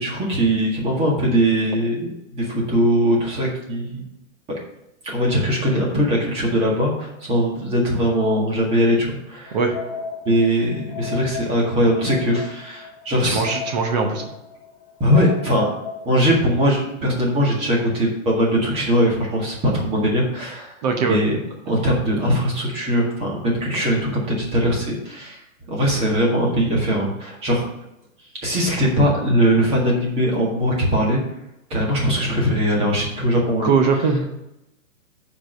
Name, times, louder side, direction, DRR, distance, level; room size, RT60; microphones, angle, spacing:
voice 1, 0.0-4.0 4.5-4.6 5.0-9.6 10.3-13.4 15.0-15.7 16.1-21.4 21.7-25.4 25.7-27.7 28.4-31.2 31.7-33.7, equal, 15° right, -3 dB, 1.8 m, -20 dB
sound 1, 9.5-16.5, left 6 dB, 35° left, 1.1 m, -35 dB
voice 2, 13.2-14.3 20.8-21.2 25.9-26.0 33.6-34.2, right 5 dB, 30° right, 3 dB, 1.0 m, -20 dB
7.0 x 5.0 x 6.6 m, 0.88 s
hypercardioid pair, 160°, 41 cm